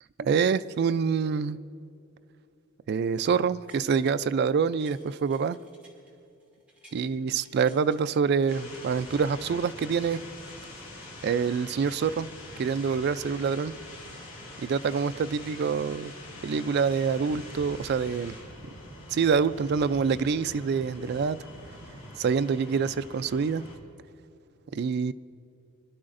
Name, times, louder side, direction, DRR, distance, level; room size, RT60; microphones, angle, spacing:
voice 1, 0.2-1.6 2.9-5.6 6.9-10.2 11.2-12.3 12.6-13.7 14.6-16.1 16.4-18.3 19.1-21.4 22.2-23.7 24.7-25.1, right 6 dB, 50° right, 13 dB, 0.3 m, -26 dB
sound 1, 3.4-4.3 4.6-7.1 7.4-9.3 9.7-11.7 12.2-12.3, right 1 dB, 5° right, 2.2 m, -57 dB
sound 2, 8.5-23.8, left 1 dB, 45° left, 3.5 m, -44 dB
25.5 x 12.0 x 2.5 m, 2.7 s
head